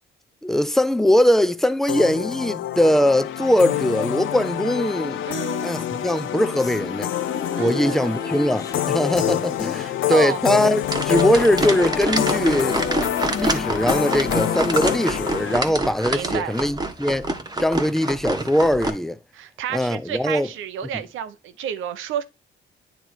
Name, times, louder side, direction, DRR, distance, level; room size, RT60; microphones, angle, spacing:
voice 1, 0.4-5.3 5.6-7.1 7.6-12.8 13.4-17.3 17.6-19.2 19.7-20.5, left 1 dB, ahead, 0.5 m, -21 dB
sound 1, 1.9-15.6, left 12 dB, 75° left, 0.7 m, -27 dB
voice 2, 5.2-5.7 7.5-8.2 9.8-10.4 16.1-16.5 19.3-22.2, right 10 dB, 85° right, 0.9 m, -30 dB
sound 2, 6.0-16.5, left 3 dB, 15° left, 0.9 m, -35 dB
sound 3, 10.8-18.9, right 2 dB, 20° right, 1.2 m, -27 dB
9.2 x 3.3 x 4.5 m
cardioid pair, 90°, 20 cm